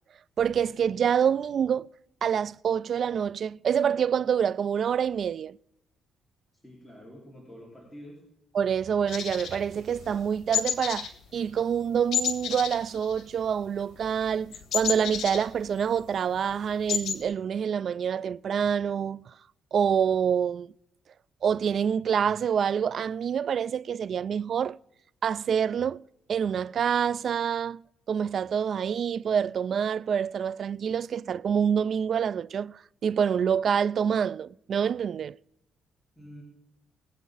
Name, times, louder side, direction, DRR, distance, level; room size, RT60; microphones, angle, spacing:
voice 1, 0.4-1.9 2.2-5.6 8.5-19.3 19.7-20.7 21.4-24.8 25.2-26.0 26.3-27.8 28.1-35.4, right 7 dB, 55° right, 0.3 m, -26 dB
voice 2, 6.6-8.2 36.2-36.4, equal, 5° left, 4.4 m, -47 dB
sound 1, 9.1-10.2 10.5-11.1 11.4-11.6 12.1-13.6 13.9-16.0 16.4-16.5 16.7-17.2, left 9 dB, 70° left, 1.7 m, -31 dB
22.0 x 8.3 x 4.0 m
cardioid pair, 90°, 0 cm